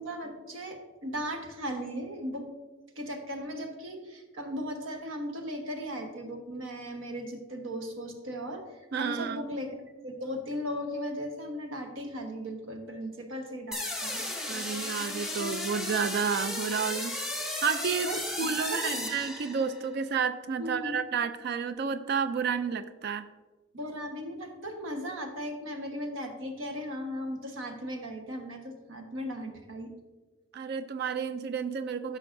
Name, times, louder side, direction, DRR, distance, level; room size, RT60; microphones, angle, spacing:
voice 1, 0.0-2.5 3.0-8.6 9.0-9.7 10.0-14.3 18.0-19.2 20.6-20.9 23.7-29.9, equal, 80° right, 4 dB, 1.2 m, -37 dB
voice 2, 8.9-9.4 14.5-18.1 18.4-23.3 30.5-32.2, right 6 dB, 55° right, 11 dB, 0.4 m, -31 dB
sound 1, 13.7-19.9, left 1 dB, ahead, 0.9 m, -34 dB
13.5 x 5.8 x 2.6 m, 1.2 s
head